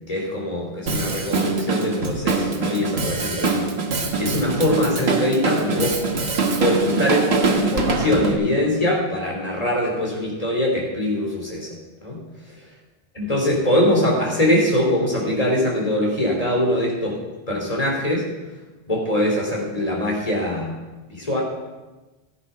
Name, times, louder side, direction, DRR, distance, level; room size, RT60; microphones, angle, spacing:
voice 1, 0.1-6.0 6.6-11.7 12.0-12.2 13.1-17.2 17.5-18.3 18.9-20.7 21.1-21.4, left 1 dB, 35° left, -2 dB, 3.3 m, -22 dB
Drum kit, 0.9-8.4, right 4 dB, 75° right, 1.5 m, -23 dB
14.5 x 8.0 x 5.7 m, 1.1 s
omnidirectional pair, 1.1 m